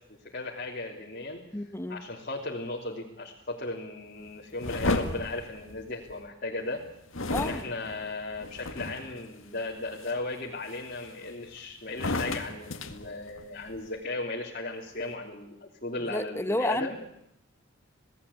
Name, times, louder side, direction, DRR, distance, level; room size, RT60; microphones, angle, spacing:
voice 1, 0.0-1.4 1.9-6.8 7.3-17.0, left 2 dB, 45° left, -3 dB, 3.1 m, -36 dB
voice 2, 1.5-2.1 7.3-7.6 16.1-17.0, left 1 dB, 10° left, 10 dB, 0.9 m, -30 dB
sound 1, 4.6-6.3 7.1-9.2 9.7-10.1 10.7-11.5 11.9-13.8, left 2 dB, 70° left, 2.0 m, -33 dB
27.5 x 18.5 x 8.5 m, 0.80 s
head